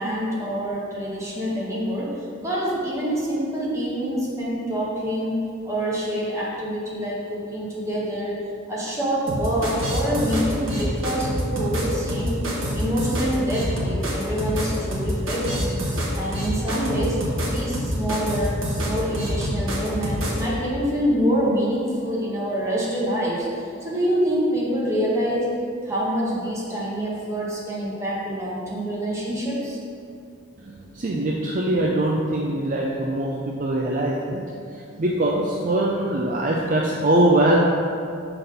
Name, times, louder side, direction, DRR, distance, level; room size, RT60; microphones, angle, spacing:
voice 1, 0.0-8.4 8.7-12.4 12.7-15.7 16.1-17.2 17.4-18.6 18.8-25.5 25.8-29.8, equal, 15° right, -6 dB, 1.4 m, -26 dB
sound 1, 9.3-20.4, equal, 80° right, 1.3 m, -26 dB
voice 2, 30.6-33.3 33.6-34.4 35.0-37.6, right 1 dB, 40° right, -2 dB, 0.5 m, -22 dB
6.1 x 3.9 x 5.2 m, 2.4 s
head